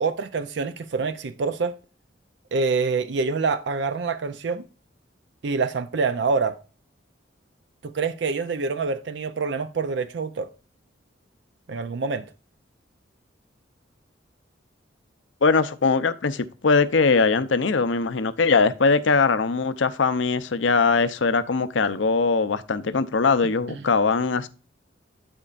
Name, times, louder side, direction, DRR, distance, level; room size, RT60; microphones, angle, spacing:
voice 1, 0.0-1.7 2.5-4.7 5.4-6.5 7.8-10.5 11.7-12.3, right 4 dB, 65° right, 0.5 m, -26 dB
voice 2, 15.4-24.5, left 4 dB, 80° left, 0.6 m, -21 dB
12.5 x 4.4 x 2.5 m
head